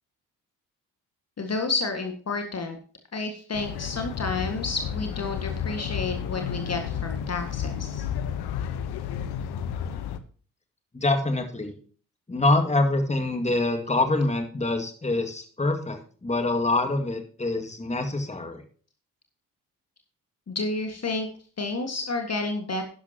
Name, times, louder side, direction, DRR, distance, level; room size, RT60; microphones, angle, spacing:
voice 1, 1.4-2.8 3.1-8.0 20.5-21.3 21.6-22.9, left 3 dB, 35° left, 5 dB, 1.8 m, -30 dB
sound 1, 3.5-10.2, left 8 dB, 60° left, 1.1 m, -32 dB
voice 2, 10.9-11.7 12.3-18.6, left 2 dB, 15° left, 5 dB, 2.2 m, -25 dB
12.0 x 11.0 x 2.9 m, 0.42 s
figure-of-eight pair, 40°, 44 cm